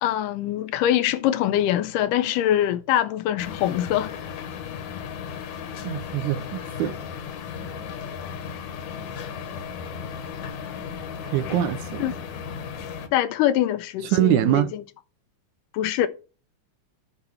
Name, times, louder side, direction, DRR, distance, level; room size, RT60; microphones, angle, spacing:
voice 1, 0.0-4.1 12.0-12.1 13.1-14.8 15.7-16.1, left 12 dB, 90° left, 2.3 m, -23 dB
sound 1, 3.4-13.1, left 7 dB, 70° left, 2.3 m, -35 dB
voice 2, 5.8-7.0 11.3-12.1 14.1-14.7, right 13 dB, 80° right, 1.9 m, -23 dB
9.9 x 3.3 x 7.0 m
omnidirectional pair, 3.7 m